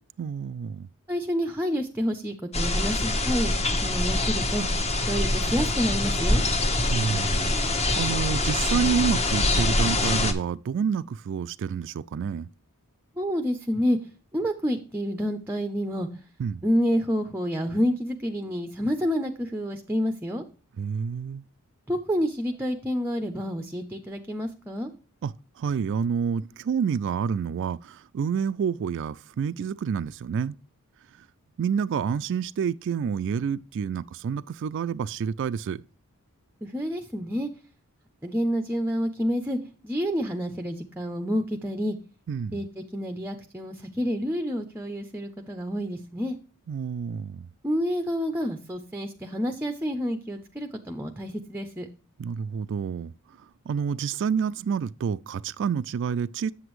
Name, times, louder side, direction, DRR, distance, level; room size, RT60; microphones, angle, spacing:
voice 1, 0.2-0.9 6.9-12.5 16.4-16.6 20.8-21.4 25.2-30.6 31.6-35.8 42.3-42.6 46.7-47.5 52.2-53.1 53.7-56.5, right 6 dB, 55° right, 0.3 m, -28 dB
voice 2, 1.1-4.7 5.1-6.4 13.2-14.0 14.3-16.1 16.6-20.4 21.9-24.9 36.6-37.5 38.2-39.6 39.8-42.0 42.5-42.7 42.9-46.4 47.6-51.9, equal, 10° right, 0.6 m, -28 dB
sound 1, 2.5-10.3, left 2 dB, 30° left, 1.0 m, -24 dB
8.0 x 7.7 x 3.1 m
head